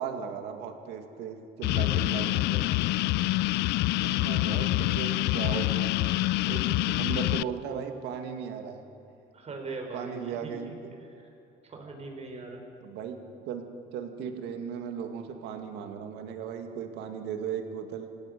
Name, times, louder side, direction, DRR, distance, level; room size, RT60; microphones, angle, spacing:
voice 1, 0.0-2.4 3.9-6.0 6.5-8.8 9.9-10.9 12.8-18.1, right 7 dB, 90° right, 6 dB, 2.1 m, -37 dB
sound 1, 1.6-7.4, left 18 dB, 80° left, 0.4 m, -26 dB
voice 2, 1.8-2.7 9.3-11.3 11.6-12.6, right 3 dB, 40° right, 3 dB, 5.1 m, -42 dB
28.0 x 16.5 x 6.7 m, 2.7 s
cardioid pair, 110°, 17 cm